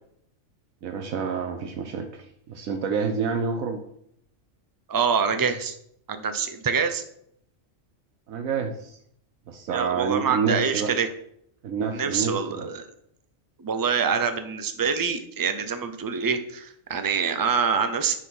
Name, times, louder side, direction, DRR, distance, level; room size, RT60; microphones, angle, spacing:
voice 1, 0.8-3.8 8.3-9.0 9.5-10.9 11.6-12.7, right 5 dB, 85° right, 4 dB, 1.2 m, -28 dB
voice 2, 4.9-5.8 6.1-7.0 9.7-11.1 11.9-12.8 13.6-18.1, right 6 dB, 25° right, 8 dB, 0.5 m, -25 dB
10.0 x 4.0 x 6.0 m, 0.71 s
omnidirectional pair, 1.4 m